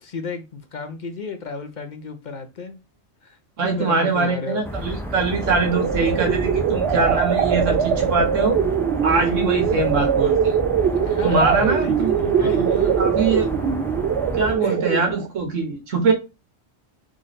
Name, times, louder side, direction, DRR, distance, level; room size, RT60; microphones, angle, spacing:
voice 1, 0.0-2.8 3.2-4.9 10.9-12.9 14.6-14.8, left 4 dB, 50° left, 0.7 m, -33 dB
voice 2, 3.6-8.6 9.0-10.5 11.2-13.5 14.3-16.1, right 3 dB, 90° right, 1.6 m, -23 dB
sound 1, 4.6-14.6, equal, 5° left, 0.4 m, -31 dB
sound 2, 5.3-15.3, right 8 dB, 65° right, 0.8 m, -22 dB
3.7 x 3.2 x 4.0 m
omnidirectional pair, 1.2 m